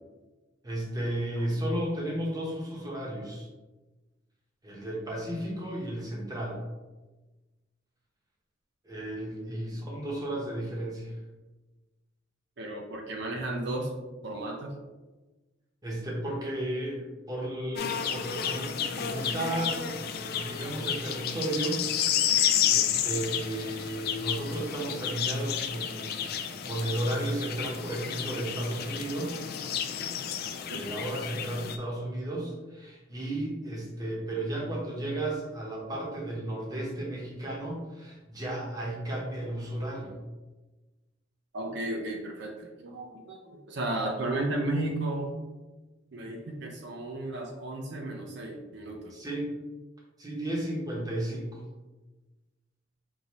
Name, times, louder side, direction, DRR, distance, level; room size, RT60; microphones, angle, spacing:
voice 1, 0.6-3.5 4.6-6.6 8.8-11.1 15.8-21.9 22.3-26.1 26.6-29.4 30.7-40.1 49.1-49.5 50.2-51.6, right 1 dB, 20° right, -3 dB, 0.8 m, -34 dB
voice 2, 12.6-13.9 14.2-14.7 30.7-30.8 41.5-45.3 46.1-49.1, right 2 dB, 60° right, 1 dB, 0.5 m, -34 dB
sound 1, 17.8-31.8, left 9 dB, 50° left, 0.3 m, -31 dB
5.3 x 2.6 x 3.0 m, 1.2 s
head